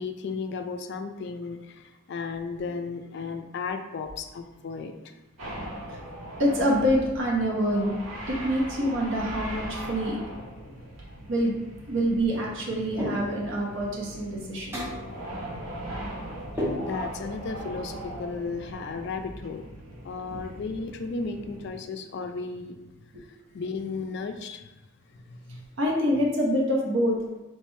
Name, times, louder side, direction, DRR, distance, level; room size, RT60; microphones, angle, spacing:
voice 1, 0.0-5.1 10.7-10.8 11.1-11.2 16.8-19.6 20.0-22.8 23.2-24.7 25.1-25.7, left 4 dB, 55° left, 7 dB, 0.3 m, -35 dB
sound 1, 5.4-21.7, right 1 dB, 90° right, 0.9 m, -40 dB
voice 2, 6.4-8.0 8.3-10.2 11.3-11.6 11.9-14.8 20.3-20.4 25.8-27.2, equal, 60° right, -3 dB, 0.7 m, -26 dB
sound 2, 13.0-13.6 14.7-15.1 16.6-17.3, left 1 dB, 10° right, 0.7 m, -31 dB
3.2 x 3.2 x 3.1 m, 1.0 s
head